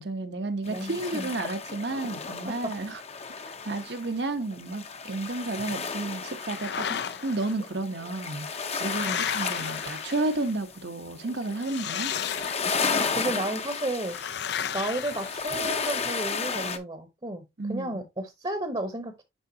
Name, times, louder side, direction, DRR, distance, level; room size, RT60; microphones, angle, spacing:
voice 1, 0.0-3.0 3.4-12.1 17.6-18.0, right 2 dB, 65° right, 1.0 m, -32 dB
sound 1, 0.7-16.8, left 5 dB, 35° left, 0.7 m, -34 dB
voice 2, 0.7-1.3 6.9-7.0 9.1-9.2 12.9-19.2, right 1 dB, 25° right, 0.9 m, -33 dB
sound 2, 6.3-7.5 8.3-10.5 11.6-13.0 14.0-15.9, left 8 dB, 60° left, 0.4 m, -34 dB
9.9 x 3.9 x 2.7 m
head